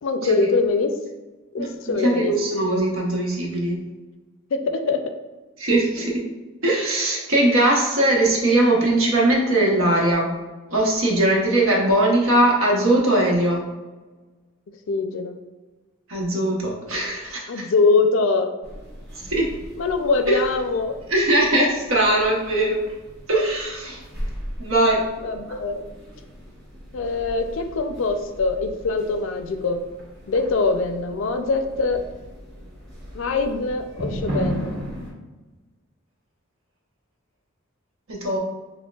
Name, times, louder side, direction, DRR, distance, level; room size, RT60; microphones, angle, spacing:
voice 1, 0.0-0.9 1.5-2.3 4.5-5.0 6.1-6.2 14.9-15.4 17.5-18.5 19.8-20.9 25.2-25.8 26.9-29.8 30.3-32.0 33.1-34.7, left 3 dB, 65° left, 7 dB, 0.4 m, -23 dB
voice 2, 1.6-3.8 5.6-6.2 6.6-10.3 10.7-13.6 16.1-17.6 19.3-19.5 20.3-20.4 21.1-22.8 23.3-24.0 24.6-25.0 38.1-38.4, right 1 dB, 80° right, -2 dB, 0.9 m, -20 dB
sound 1, 18.6-35.1, equal, 50° right, 1.2 m, -36 dB
6.1 x 2.1 x 2.3 m, 1.2 s
head